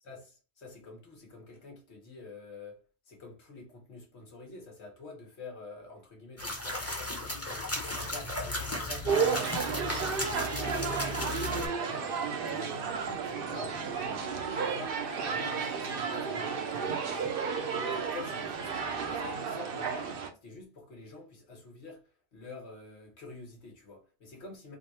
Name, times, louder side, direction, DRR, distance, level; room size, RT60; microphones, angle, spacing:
voice 1, 0.0-2.8 3.1-17.4 17.9-24.8, left 3 dB, 80° left, 1.5 m, -48 dB
sound 1, 6.4-11.7, left 2 dB, 15° left, 0.9 m, -35 dB
sound 2, 9.0-20.3, right 5 dB, 60° right, 0.8 m, -32 dB
3.5 x 2.4 x 4.1 m
omnidirectional pair, 1.1 m